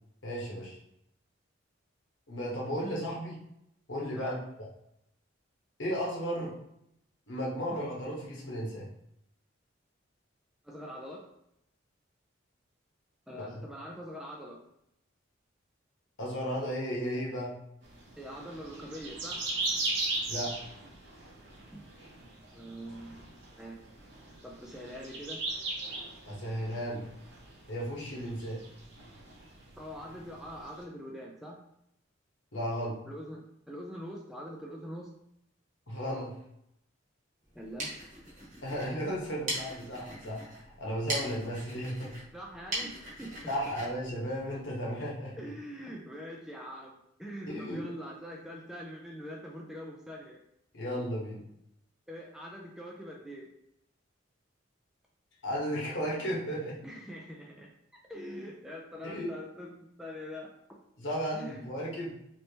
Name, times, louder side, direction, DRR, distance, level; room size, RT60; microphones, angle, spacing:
voice 1, 0.2-0.8 2.3-3.4 3.9-4.3 5.8-6.5 7.3-8.9 13.5-13.6 16.2-17.5 20.3-20.5 26.2-27.0 27.7-28.6 32.5-33.0 35.9-36.3 38.6-42.1 43.5-45.4 47.5-47.8 50.7-51.4 55.4-56.8 59.0-59.3 61.0-62.1, equal, 70° left, -4 dB, 1.1 m, -34 dB
voice 2, 10.6-11.3 13.3-14.6 18.2-19.5 21.7-21.8 22.5-23.2 23.5-23.8 24.4-25.4 29.8-31.6 33.1-35.1 37.6-37.9 42.3-43.7 45.4-50.4 52.1-53.5 56.8-57.7 58.1-60.5 61.3-61.6, equal, ahead, -1 dB, 0.4 m, -43 dB
sound 1, 17.8-30.8, right 2 dB, 60° right, 0.7 m, -39 dB
sound 2, 37.5-45.0, right 1 dB, 40° right, 1.0 m, -41 dB
3.3 x 2.9 x 2.8 m, 0.78 s
head